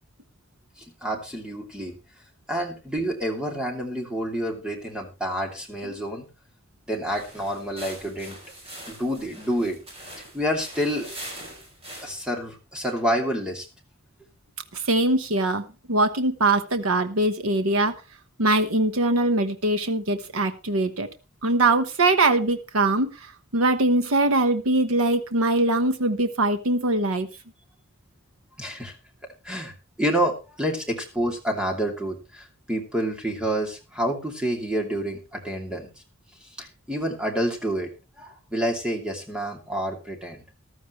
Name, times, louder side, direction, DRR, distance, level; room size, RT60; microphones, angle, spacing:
voice 1, 0.8-1.9 2.5-6.3 6.9-8.4 8.9-9.8 10.3-11.1 12.0-13.7 28.6-29.0 29.4-35.9 36.4-37.9 38.2-40.4, equal, 5° right, 2 dB, 2.7 m, -28 dB
sound 1, 7.1-12.3, right 1 dB, 30° right, 5.6 m, -42 dB
voice 2, 14.7-18.0 18.4-21.1 21.4-27.3, right 2 dB, 90° right, 9 dB, 1.1 m, -22 dB
15.0 x 12.5 x 3.1 m, 0.28 s
head